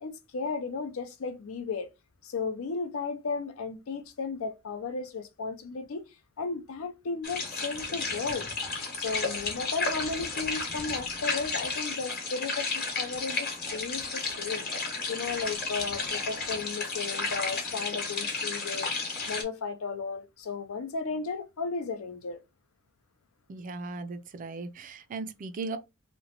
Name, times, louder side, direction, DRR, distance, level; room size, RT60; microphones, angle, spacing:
voice 1, 0.0-1.9 2.2-6.0 6.4-8.6 8.9-14.7 15.1-18.9 19.3-22.4, left 4 dB, 85° left, 0.5 m, -34 dB
sound 1, 7.2-19.4, left 4 dB, 45° left, 0.9 m, -33 dB
voice 2, 23.5-25.8, right 3 dB, 40° right, 0.3 m, -37 dB
2.9 x 2.1 x 2.8 m
head